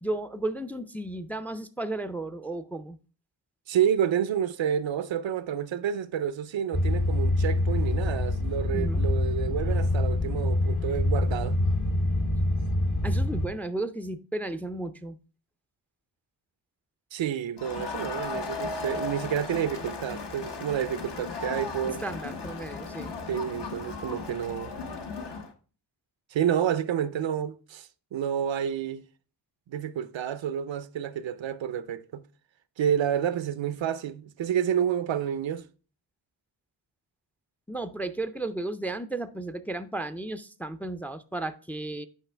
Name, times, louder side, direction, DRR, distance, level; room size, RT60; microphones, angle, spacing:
voice 1, 0.0-3.0 8.7-9.0 13.0-15.2 21.9-23.1 37.7-42.1, right 2 dB, 5° left, 0.4 m, -34 dB
voice 2, 3.7-11.6 17.1-22.0 23.3-24.7 26.3-29.0 29.7-32.2 32.8-35.7, right 9 dB, 90° right, 0.6 m, -29 dB
sound 1, 6.7-13.5, left 1 dB, 45° left, 0.9 m, -25 dB
Crowd, 17.6-25.5, left 4 dB, 65° left, 1.1 m, -36 dB
8.3 x 5.5 x 3.3 m
wide cardioid pair, 105°, 44 cm